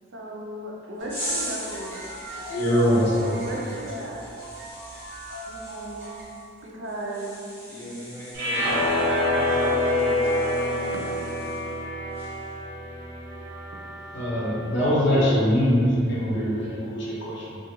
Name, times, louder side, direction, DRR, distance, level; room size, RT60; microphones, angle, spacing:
voice 1, 0.1-1.9 3.4-4.4 5.5-6.1 6.6-7.4, right 1 dB, 65° right, -3 dB, 0.4 m, -36 dB
sound 1, 1.0-6.2, right 1 dB, 30° right, 1.0 m, -39 dB
sound 2, 1.1-11.8 12.1-12.5, equal, 10° left, 0.8 m, -40 dB
voice 2, 2.3-3.4 14.1-17.6, equal, 60° left, -7 dB, 0.7 m, -23 dB
voice 3, 7.6-10.7, equal, 25° left, -13 dB, 1.3 m, -38 dB
sound 3, 8.3-14.6, left 1 dB, 85° right, 0.9 m, -26 dB
2.5 x 2.4 x 2.8 m, 2.6 s
head